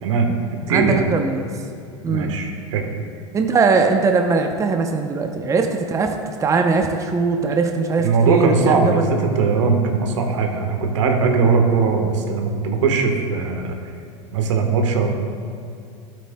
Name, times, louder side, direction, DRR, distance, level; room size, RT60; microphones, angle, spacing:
voice 1, 0.0-0.3 0.7-1.1 2.1-2.9 8.0-13.7 14.3-15.1, right 5 dB, 75° right, 3 dB, 1.3 m, -19 dB
voice 2, 0.7-1.5 2.0-2.3 3.3-9.0, right 4 dB, 20° right, 4 dB, 0.6 m, -20 dB
12.5 x 8.5 x 2.2 m, 2.5 s
hypercardioid pair, 95°, 16 cm